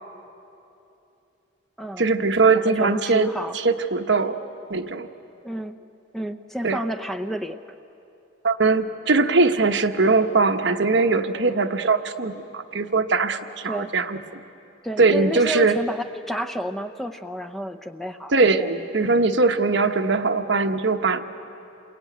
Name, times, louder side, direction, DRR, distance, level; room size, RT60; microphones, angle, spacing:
voice 1, 2.0-3.3 3.5-4.4 4.7-5.1 6.6-6.8 8.4-14.2 15.0-15.8 18.3-21.2, right 3 dB, 65° right, 7 dB, 1.1 m, -21 dB
voice 2, 2.6-3.6 5.4-5.8 6.1-7.6 13.7-13.9 14.8-18.3 18.6-18.7, right 1 dB, ahead, 8 dB, 0.6 m, -30 dB
28.5 x 22.5 x 9.3 m, 2.8 s
head